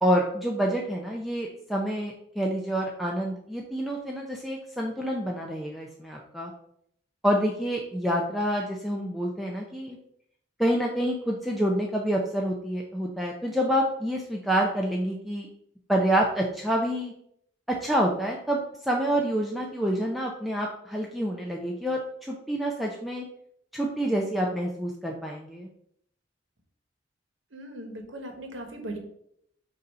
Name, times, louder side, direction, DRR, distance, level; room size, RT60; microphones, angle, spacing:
voice 1, 0.0-6.5 7.2-10.0 10.6-15.5 15.9-17.1 17.8-23.2 23.7-25.7, equal, ahead, -1 dB, 0.5 m, -27 dB
voice 2, 27.5-29.0, right 1 dB, 80° right, 4 dB, 1.2 m, -38 dB
6.5 x 2.7 x 5.4 m, 0.71 s
head